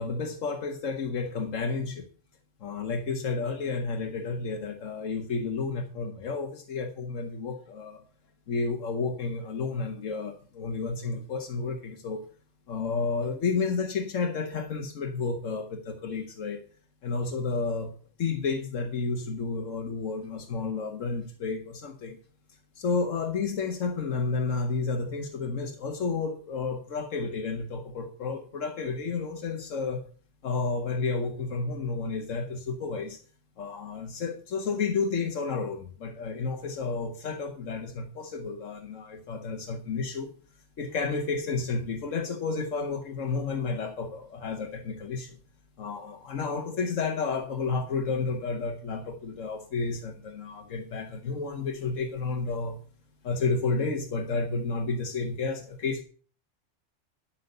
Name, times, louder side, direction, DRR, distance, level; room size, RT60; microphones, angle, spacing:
voice 1, 0.0-2.0 2.6-8.0 8.5-12.2 12.7-16.6 17.0-22.2 22.8-30.0 30.4-33.2 33.6-40.3 40.8-45.4 45.8-52.8 53.2-56.0, left 4 dB, 85° left, 4 dB, 1.5 m, -31 dB
12.0 x 5.8 x 6.6 m, 0.43 s
omnidirectional pair, 1.3 m